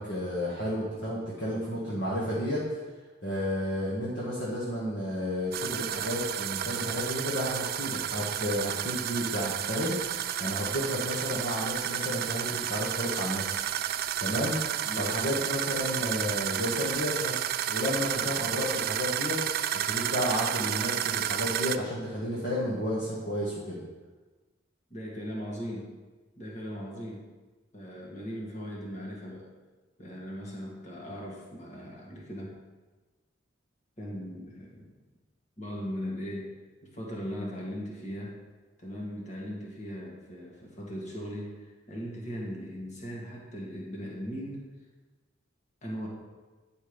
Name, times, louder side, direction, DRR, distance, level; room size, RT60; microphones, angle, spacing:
voice 1, 0.0-2.6 3.2-13.6 14.2-14.6 15.0-19.4 19.9-23.8, equal, 65° left, -7 dB, 1.8 m, -32 dB
sound 1, 5.5-21.8, right 10 dB, 50° right, 0.3 m, -31 dB
voice 2, 24.9-25.9 26.4-27.2 27.7-29.5 30.0-32.5 34.0-34.9 35.6-36.5 36.8-38.4 38.8-44.6 45.8-46.1, equal, 40° left, -3 dB, 1.8 m, -38 dB
9.9 x 5.4 x 5.2 m, 1.3 s
head